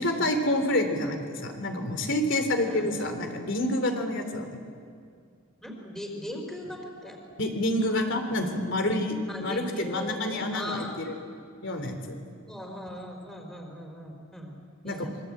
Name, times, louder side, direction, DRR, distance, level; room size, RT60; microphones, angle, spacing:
voice 1, 0.0-4.6 7.4-11.2 11.6-12.0 14.8-15.1, left 1 dB, 60° left, 6 dB, 3.4 m, -28 dB
voice 2, 5.6-7.2 9.3-11.0 12.5-14.5 14.8-15.1, equal, ahead, 2 dB, 3.9 m, -39 dB
27.0 x 23.5 x 8.7 m, 2.2 s
head